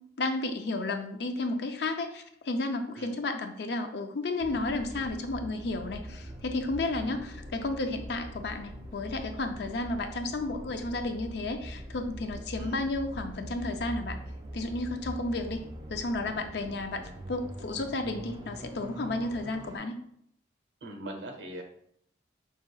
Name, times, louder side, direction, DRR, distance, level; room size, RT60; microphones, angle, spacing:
voice 1, 0.2-14.2 14.5-15.6 15.9-17.0 17.3-19.9, left 2 dB, 60° left, 6 dB, 0.5 m, -32 dB
sound 1, 4.4-19.8, right 1 dB, 20° right, 0.4 m, -43 dB
voice 2, 20.8-21.6, right 1 dB, 70° right, 3 dB, 0.8 m, -41 dB
5.6 x 2.8 x 2.3 m, 0.69 s
head